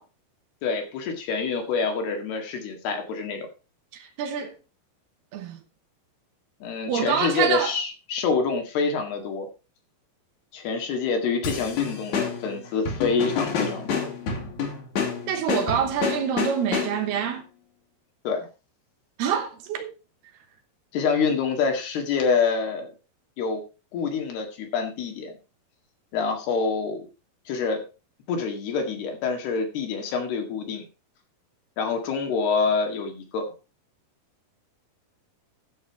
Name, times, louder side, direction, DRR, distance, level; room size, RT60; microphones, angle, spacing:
voice 1, 0.6-3.5 6.6-9.5 10.5-14.1 18.2-18.4 20.9-22.9 23.4-23.6 23.9-25.4 26.1-27.1 27.5-27.8 28.3-30.9 31.8-33.5, left 5 dB, 70° left, 3.8 m, -26 dB
voice 2, 3.9-4.5 5.3-5.6 6.9-7.7 15.3-17.4 19.2-19.9, right 8 dB, 70° right, 3.0 m, -26 dB
sound 1, 11.4-17.2, left 5 dB, 50° left, 3.1 m, -29 dB
12.5 x 6.9 x 4.6 m
omnidirectional pair, 5.0 m